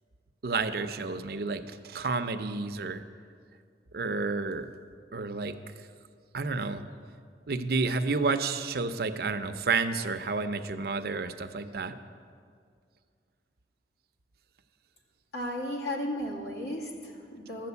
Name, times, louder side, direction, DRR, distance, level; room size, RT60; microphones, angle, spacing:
voice 1, 0.4-3.0 3.9-4.7 5.1-5.6 6.3-6.9 7.5-12.0, right 4 dB, 60° right, 9 dB, 0.6 m, -30 dB
voice 2, 15.3-17.7, left 1 dB, 70° left, -1 dB, 2.2 m, -34 dB
12.0 x 7.6 x 8.1 m, 2.1 s
head